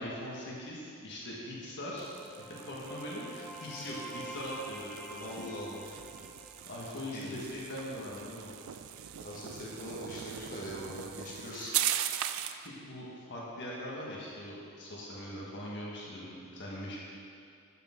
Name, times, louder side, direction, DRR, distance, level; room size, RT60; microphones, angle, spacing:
voice 1, 0.0-2.1 2.4-5.3 6.7-8.5 12.4-17.0, left 1 dB, 55° left, -5 dB, 1.6 m, -41 dB
sound 1, 1.7-7.4, right 1 dB, 5° left, 0.4 m, -47 dB
sound 2, 2.0-12.7, right 11 dB, 65° right, 0.4 m, -40 dB
voice 2, 5.2-5.9 6.9-7.7 9.2-11.8, equal, 40° left, -6 dB, 1.6 m, -42 dB
12.0 x 6.7 x 3.8 m, 2.4 s
head